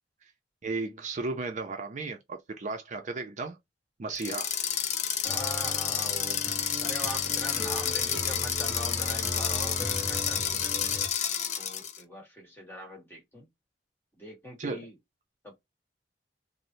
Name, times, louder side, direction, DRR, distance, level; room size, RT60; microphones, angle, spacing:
voice 1, 0.6-3.6 4.0-4.5 14.6-14.9, right 3 dB, 45° right, 0.5 m, -34 dB
sound 1, 4.2-12.0, left 8 dB, 45° left, 0.4 m, -30 dB
voice 2, 5.2-6.5 6.8-9.8 10.1-11.3 11.6-13.5 14.2-15.0 15.4-15.6, equal, 15° left, 1.3 m, -42 dB
sound 2, 5.2-11.1, equal, 5° right, 0.9 m, -38 dB
3.1 x 2.0 x 2.6 m
head